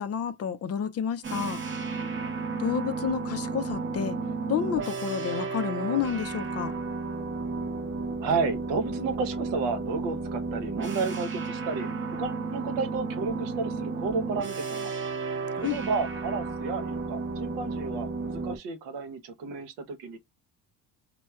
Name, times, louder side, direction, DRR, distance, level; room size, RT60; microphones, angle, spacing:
voice 1, 0.0-1.6 2.6-4.2 4.5-6.7 15.6-15.8, left 8 dB, 40° left, 0.4 m, -30 dB
sound 1, 1.2-18.6, right 4 dB, 30° right, 0.8 m, -33 dB
voice 2, 8.2-14.9 15.7-20.2, right 4 dB, 85° right, 0.9 m, -32 dB
4.3 x 2.1 x 2.3 m
cardioid pair, 95°, 39 cm